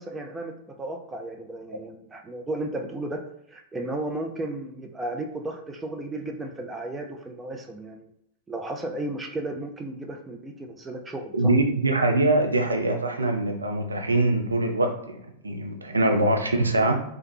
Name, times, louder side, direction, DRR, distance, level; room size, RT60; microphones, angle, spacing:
voice 1, 0.0-3.2 3.5-8.1 8.5-11.5, right 2 dB, 15° right, 3 dB, 0.4 m, -34 dB
voice 2, 11.3-17.0, right 2 dB, 80° right, 4 dB, 0.4 m, -23 dB
3.1 x 2.3 x 3.2 m, 0.75 s
figure-of-eight pair, 90°, 0 cm